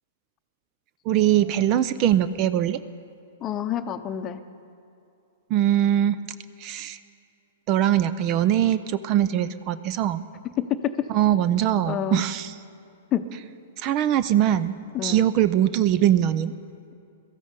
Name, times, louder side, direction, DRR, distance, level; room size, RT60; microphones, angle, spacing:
voice 1, 1.1-2.8 5.5-6.2 6.6-7.0 7.7-10.2 11.1-12.5 13.8-16.5, right 11 dB, 40° right, 14 dB, 0.5 m, -22 dB
voice 2, 3.4-4.4 10.6-11.1 11.9-12.3 13.1-13.3 14.9-15.3, left 10 dB, 30° left, 9 dB, 0.8 m, -27 dB
22.5 x 14.0 x 4.0 m, 2.6 s
figure-of-eight pair, 110°, 0 cm